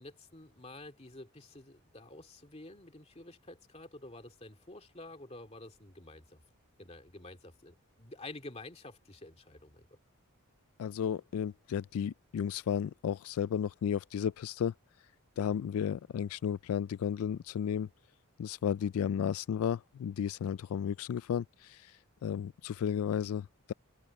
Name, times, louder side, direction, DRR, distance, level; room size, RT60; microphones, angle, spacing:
voice 1, 0.0-6.4 6.8-9.9, left 2 dB, 30° left, 2.4 m, -49 dB
voice 2, 10.8-14.7 15.4-17.9 18.4-23.7, left 8 dB, 80° left, 0.3 m, -33 dB
head